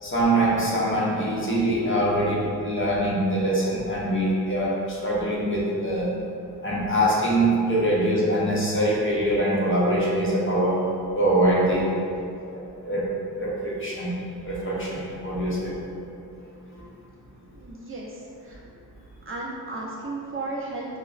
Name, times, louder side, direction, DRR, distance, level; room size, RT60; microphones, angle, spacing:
voice 1, 0.0-6.1 6.6-10.8 11.2-11.9 12.5-13.1 13.4-14.2 14.4-15.8 16.8-16.9, right 1 dB, 35° left, -6 dB, 0.7 m, -23 dB
voice 2, 17.5-18.6 19.3-21.0, right 2 dB, 35° right, -5 dB, 0.4 m, -34 dB
4.9 x 2.0 x 2.4 m, 2.6 s
wide cardioid pair, 115°, 37 cm